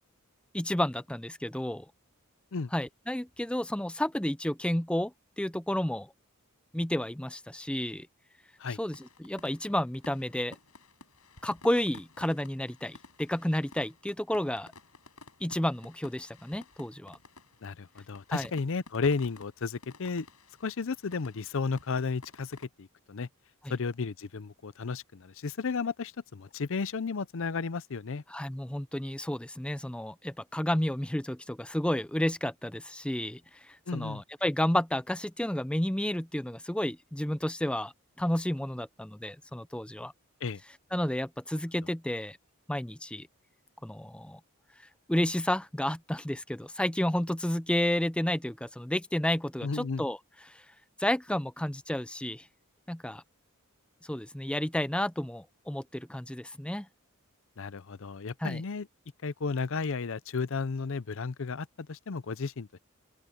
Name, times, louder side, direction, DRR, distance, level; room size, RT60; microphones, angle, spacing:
voice 1, 0.5-1.9 2.7-6.1 6.7-8.1 8.8-10.6 11.4-14.7 15.4-17.2 18.3-18.5 23.6-23.7 28.3-37.9 38.2-40.1 40.9-42.4 42.7-43.3 43.8-44.4 45.1-50.2 50.5-50.6 51.0-52.5 52.9-53.2 54.1-56.9 58.4-58.6, left 1 dB, 5° left, 0.5 m, -31 dB
sound 1, 8.9-22.6, left 3 dB, 75° left, 6.9 m, -53 dB
voice 2, 17.6-20.3 20.6-23.3 23.7-28.2 33.9-34.2 40.4-40.6 49.6-50.0 57.6-58.9 59.2-62.8, left 4 dB, 60° left, 0.6 m, -33 dB
open air
head